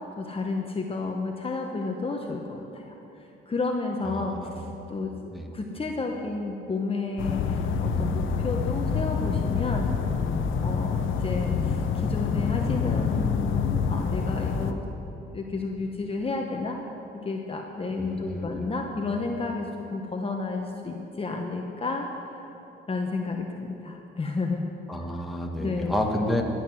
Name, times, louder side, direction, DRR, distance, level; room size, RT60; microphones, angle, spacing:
voice 1, 0.0-2.9 3.5-10.0 10.6-14.8 15.3-16.8 17.2-22.4 22.9-24.7 25.6-26.0, left 3 dB, 30° left, 2 dB, 1.1 m, -31 dB
voice 2, 4.0-4.6 5.3-5.5 18.0-18.7 24.9-26.4, left 1 dB, ahead, 0 dB, 1.6 m, -30 dB
sound 1, 7.2-14.7, left 5 dB, 80° left, 0.8 m, -27 dB
14.0 x 9.6 x 6.3 m, 3.0 s
cardioid pair, 90°, 20 cm